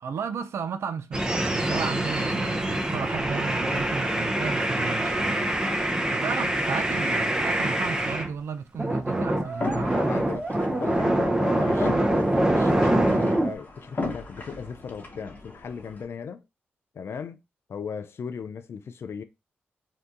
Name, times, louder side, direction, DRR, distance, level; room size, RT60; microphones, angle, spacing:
voice 1, 0.0-5.5 6.1-9.9, right 6 dB, 70° right, 0.4 m, -34 dB
sound 1, 1.1-8.3 8.7-13.6, right 1 dB, 15° right, 0.6 m, -25 dB
sound 2, 9.5-16.0, left 3 dB, 40° left, 1.1 m, -37 dB
voice 2, 9.8-16.4 16.9-17.4 17.7-19.2, left 6 dB, 65° left, 0.4 m, -37 dB
2.8 x 2.2 x 3.6 m
supercardioid pair, 50°, 5 cm